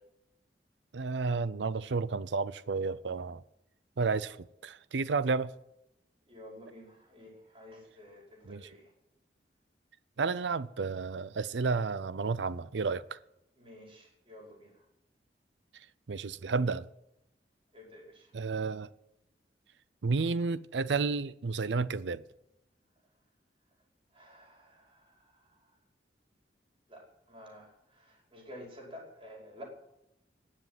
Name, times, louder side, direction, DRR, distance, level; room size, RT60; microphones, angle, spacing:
voice 1, 0.9-3.4 4.0-4.4 4.6-5.5 8.5-8.6 10.2-13.2 16.1-16.9 18.3-18.9 20.0-22.2, right 4 dB, 85° right, 0.6 m, -31 dB
voice 2, 6.3-8.9 13.6-14.8 17.7-18.3 24.1-25.7 26.9-29.6, left 1 dB, 30° right, 5.3 m, -51 dB
19.5 x 7.6 x 9.7 m
head